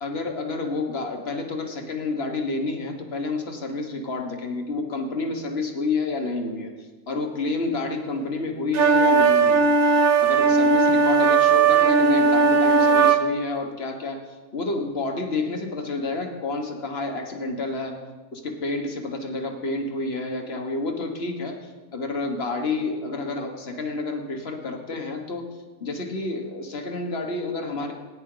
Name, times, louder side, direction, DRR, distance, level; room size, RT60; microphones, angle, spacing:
voice 1, 0.0-14.3 14.5-18.0 18.3-25.5 25.8-27.9, left 3 dB, 45° left, 3 dB, 1.6 m, -29 dB
sound 1, 8.7-13.2, right 5 dB, 75° right, 1.3 m, -17 dB
18.5 x 10.0 x 3.9 m, 1.3 s
omnidirectional pair, 1.5 m